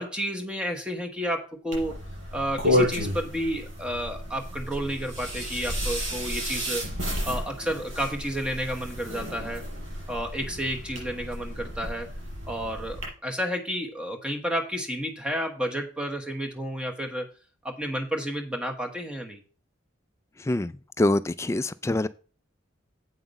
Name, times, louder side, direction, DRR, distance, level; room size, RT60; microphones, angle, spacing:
voice 1, 0.0-2.0 2.3-6.9 7.2-9.7 10.1-12.1 12.5-17.3 17.6-19.4, equal, 5° right, 1.1 m, -31 dB
sound 1, 1.7-13.1, equal, 80° right, 5.1 m, -31 dB
voice 2, 20.4-22.1, left 1 dB, 15° left, 0.3 m, -25 dB
8.0 x 5.8 x 5.3 m
head